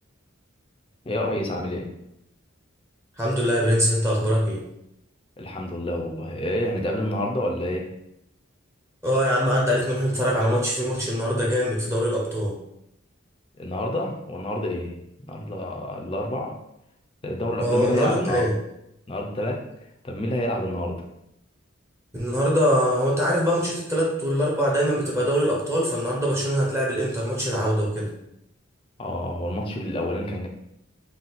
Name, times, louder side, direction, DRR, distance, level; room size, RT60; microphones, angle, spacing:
voice 1, 1.1-1.9 5.4-8.0 13.5-16.6 17.2-18.5 19.1-19.7 20.0-21.0 29.0-30.5, left 1 dB, 25° left, 1 dB, 0.5 m, -28 dB
voice 2, 3.2-4.6 9.0-12.6 17.6-18.5 22.1-28.1, equal, 15° right, -4 dB, 0.7 m, -23 dB
4.0 x 2.3 x 3.9 m, 0.81 s
head